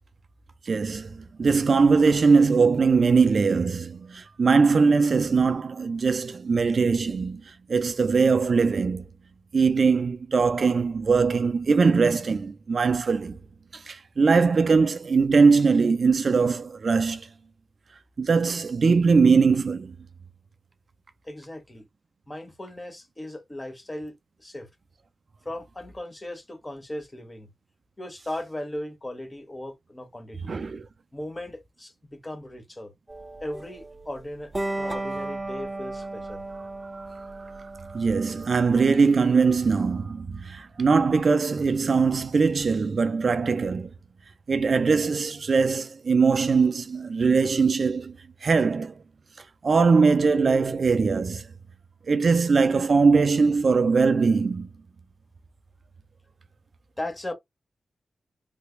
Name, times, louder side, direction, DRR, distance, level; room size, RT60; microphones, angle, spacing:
voice 1, 0.7-9.0 9.5-13.4 13.7-17.3 18.2-19.9 30.4-30.8 36.9-37.1 37.6-37.7 37.9-43.9 44.5-48.2 48.4-48.9 49.6-51.5 52.1-54.7, right 4 dB, 55° right, 0.4 m, -21 dB
voice 2, 21.2-21.9 22.3-24.7 25.4-27.5 28.0-30.6 31.1-32.9 33.4-36.4 57.0-57.3, left 1 dB, 20° left, 1.2 m, -37 dB
sound 1, 33.1-38.6, right 2 dB, 15° right, 0.6 m, -35 dB
3.3 x 3.2 x 2.3 m
wide cardioid pair, 90°, 0 cm